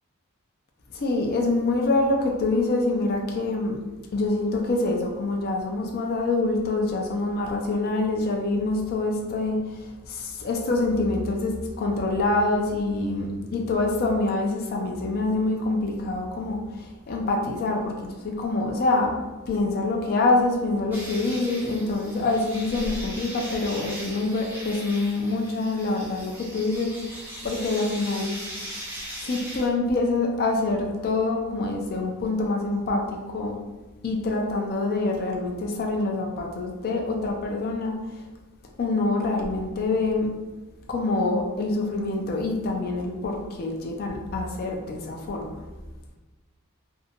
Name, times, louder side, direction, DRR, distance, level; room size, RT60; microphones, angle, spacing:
voice 1, 0.9-3.8 4.1-19.1 19.5-28.7 29.2-33.6 34.0-38.2 38.8-40.3 40.9-45.6, left 2 dB, 45° left, 1 dB, 0.4 m, -26 dB
sound 1, 20.9-29.7, right 1 dB, 10° right, 0.5 m, -39 dB
2.7 x 2.1 x 2.7 m, 1.2 s
head